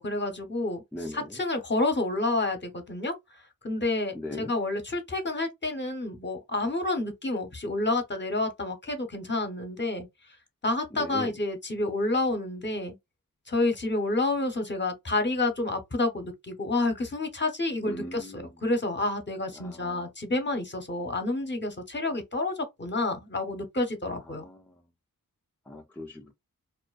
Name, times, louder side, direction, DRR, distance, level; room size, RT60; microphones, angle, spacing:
voice 1, 0.0-3.1 3.6-10.1 10.6-13.0 13.5-24.5, left 2 dB, 30° left, 0.8 m, -29 dB
voice 2, 0.9-1.3 4.1-4.5 11.0-11.3 17.9-18.5 19.6-20.1 24.3-24.6 25.7-26.3, left 1 dB, 5° left, 0.5 m, -39 dB
2.5 x 2.1 x 2.3 m
wide cardioid pair, 55°, 34 cm